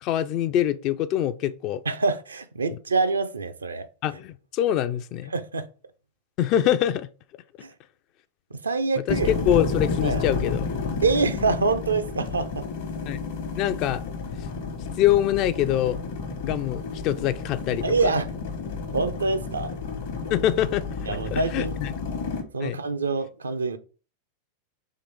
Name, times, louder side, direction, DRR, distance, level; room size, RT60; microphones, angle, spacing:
voice 1, 0.0-1.8 4.0-5.3 6.4-7.1 9.1-10.7 13.1-13.2 13.6-14.0 15.0-16.0 16.4-17.8 20.3-21.9 22.6-22.8, left 11 dB, 40° left, 0.4 m, -24 dB
voice 2, 1.8-3.9 5.3-5.7 7.6-7.7 8.5-9.3 10.0-10.2 11.0-12.6 17.8-18.3 18.9-19.7 21.1-21.7 22.5-23.8, right 4 dB, 75° right, 0.5 m, -25 dB
sound 1, 9.1-22.4, left 4 dB, 55° left, 1.0 m, -31 dB
3.8 x 3.0 x 4.5 m
figure-of-eight pair, 90°, 0 cm